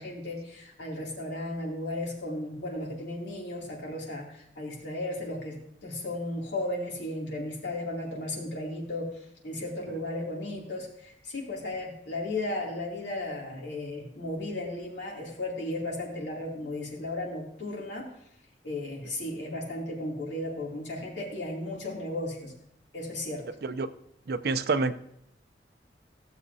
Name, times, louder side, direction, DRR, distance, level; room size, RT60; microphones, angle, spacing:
voice 1, 0.0-9.1 9.4-18.1 18.6-22.5 22.9-23.5, left 1 dB, 80° left, -2 dB, 2.6 m, -35 dB
voice 2, 24.3-24.9, right 4 dB, 60° right, 12 dB, 0.5 m, -27 dB
15.5 x 7.3 x 2.7 m, 0.76 s
head